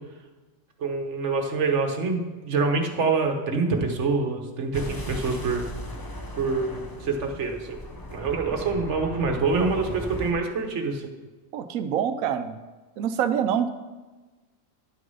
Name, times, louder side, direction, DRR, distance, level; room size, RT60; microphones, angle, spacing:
voice 1, 0.8-5.6 6.3-7.8 8.1-11.1, right 4 dB, 60° right, 4 dB, 1.4 m, -26 dB
sound 1, 4.7-10.3, left 1 dB, 20° left, 0.7 m, -37 dB
voice 2, 11.5-12.6 13.0-13.7, right 8 dB, 90° right, 9 dB, 1.1 m, -25 dB
11.0 x 6.5 x 5.5 m, 1.2 s
omnidirectional pair, 1.4 m